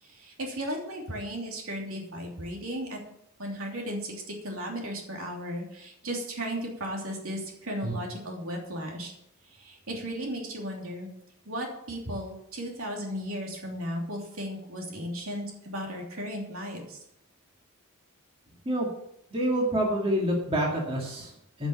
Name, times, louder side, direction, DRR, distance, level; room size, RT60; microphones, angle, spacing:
voice 1, 0.0-3.0 3.4-4.1 4.4-9.1 9.5-11.1 11.4-17.0, equal, 65° right, 0 dB, 3.0 m, -35 dB
voice 2, 19.3-21.7, equal, 25° right, -2 dB, 2.2 m, -27 dB
10.5 x 6.2 x 8.3 m, 0.76 s
head